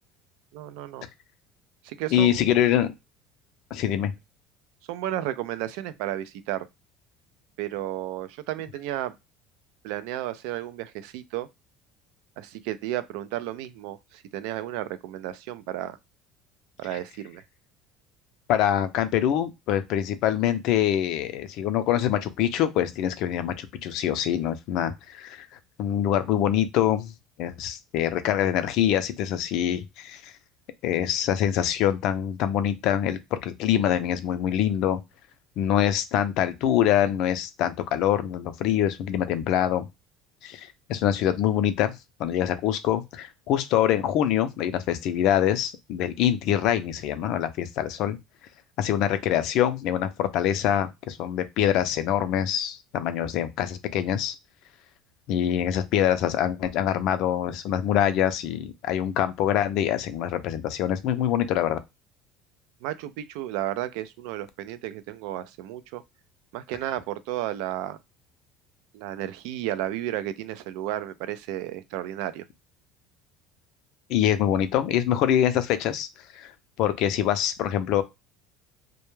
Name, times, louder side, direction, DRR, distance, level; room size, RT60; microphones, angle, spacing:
voice 1, 0.5-1.1 1.8-2.4 4.9-6.7 7.6-9.1 9.8-11.5 12.4-16.0 16.8-17.4 62.8-66.0 66.5-68.0 68.9-72.5, right 13 dB, 80° right, 0.3 m, -33 dB
voice 2, 2.1-2.9 3.7-4.1 18.5-25.5 25.8-27.1 27.4-30.3 30.8-35.0 35.6-39.8 40.4-41.9 42.2-48.2 48.8-54.3 55.3-61.8 74.1-76.1 76.3-76.5 76.8-78.0, left 10 dB, 65° left, 0.4 m, -24 dB
2.1 x 2.1 x 3.0 m
cardioid pair, 125°, 0 cm